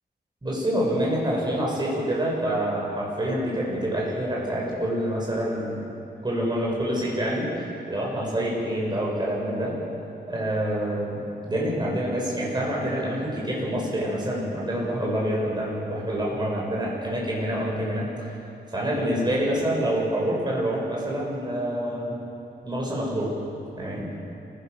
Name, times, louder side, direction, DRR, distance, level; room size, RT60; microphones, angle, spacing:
voice 1, 0.4-5.8 6.2-9.7 10.3-18.1 18.7-22.2 22.6-23.3 23.8-24.1, right 1 dB, 25° right, -4 dB, 6.7 m, -27 dB
27.5 x 17.5 x 7.0 m, 2.7 s
wide cardioid pair, 135°, 18 cm